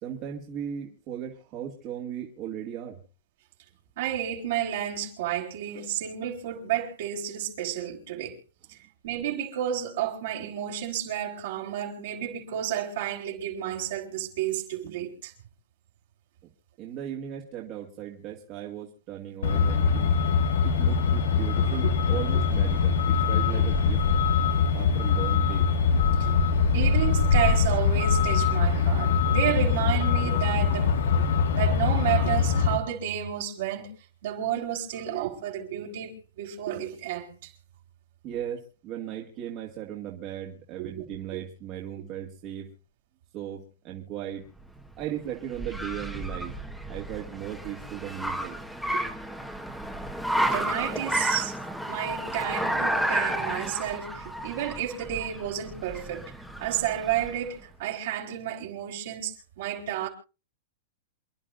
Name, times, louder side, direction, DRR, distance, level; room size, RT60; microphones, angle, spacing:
voice 1, 0.0-3.0 16.8-20.1 20.6-24.0 24.7-25.7 38.2-42.7 43.3-44.5 45.0-46.5 46.9-48.6, right 10 dB, 35° right, 2.2 m, -37 dB
voice 2, 4.0-8.4 8.7-8.8 9.0-15.3 21.6-21.8 22.3-22.4 26.2-26.5 26.7-31.3 31.5-33.9 34.2-37.5 40.8-41.1 41.3-41.4 48.9-49.0 50.5-51.5 51.9-56.3 56.6-60.1, right 11 dB, 65° right, 4.1 m, -31 dB
Truck, 19.4-32.8, left 5 dB, 90° left, 1.8 m, -23 dB
Car, 44.6-57.5, right 1 dB, ahead, 1.5 m, -32 dB
28.0 x 11.0 x 2.6 m
supercardioid pair, 150°, 0 cm